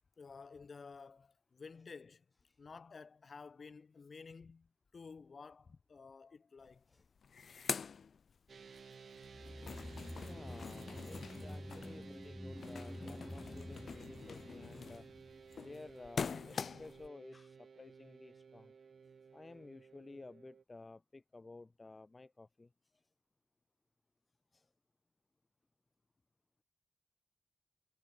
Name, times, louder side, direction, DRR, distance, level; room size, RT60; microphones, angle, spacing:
voice 1, 0.2-2.2 2.6-6.8, left 5 dB, 55° left, 2.0 m, -53 dB
sound 1, 6.7-6.8 7.0-8.8 9.2-17.1, left 6 dB, 75° left, 1.1 m, -45 dB
sound 2, 8.5-20.6, right 6 dB, 70° right, 1.4 m, -56 dB
sound 3, 9.2-15.6 15.9-16.0, equal, 5° left, 1.0 m, -49 dB
voice 2, 10.2-15.1 15.6-18.7 19.3-22.7 24.5-24.7, left 3 dB, 30° left, 0.8 m, -54 dB
wide cardioid pair, 95°, 0 cm